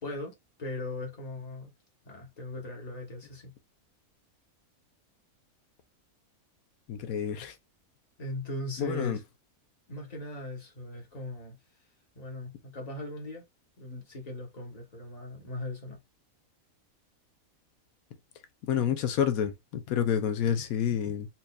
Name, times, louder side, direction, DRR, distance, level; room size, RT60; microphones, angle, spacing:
voice 1, 0.0-0.3 0.6-1.7 2.0-3.5 8.2-9.2 9.9-11.6 12.1-13.4 13.8-16.0, left 2 dB, 30° left, 1.2 m, -39 dB
voice 2, 6.9-7.5 8.8-9.2 18.7-21.3, left 8 dB, 75° left, 1.1 m, -28 dB
4.3 x 2.6 x 2.3 m
omnidirectional pair, 1.5 m